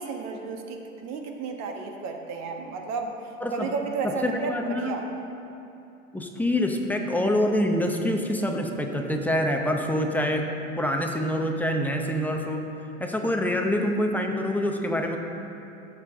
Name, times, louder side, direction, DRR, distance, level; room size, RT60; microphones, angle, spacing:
voice 1, 0.0-5.0, right 4 dB, 40° right, 3 dB, 1.3 m, -33 dB
voice 2, 4.0-4.9 6.1-10.5 10.8-12.7 13.0-15.2, left 1 dB, 5° left, 2 dB, 0.8 m, -26 dB
16.5 x 6.8 x 3.7 m, 2.8 s
hypercardioid pair, 110°, 39 cm